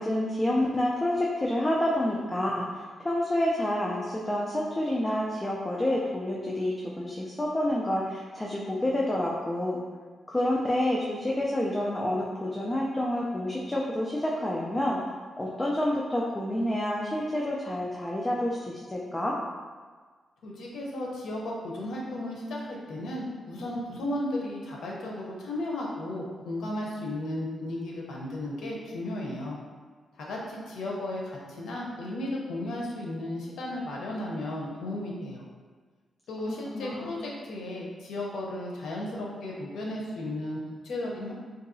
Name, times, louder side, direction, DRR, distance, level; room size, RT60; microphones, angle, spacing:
voice 1, 0.0-9.8 10.3-15.0 15.4-19.4 36.5-37.2, left 1 dB, 15° left, -4 dB, 0.4 m, -28 dB
voice 2, 20.4-29.6 30.2-35.4 36.3-41.3, left 1 dB, 85° left, -3 dB, 0.7 m, -34 dB
3.9 x 2.7 x 2.6 m, 1.5 s
cardioid pair, 120°, 0 cm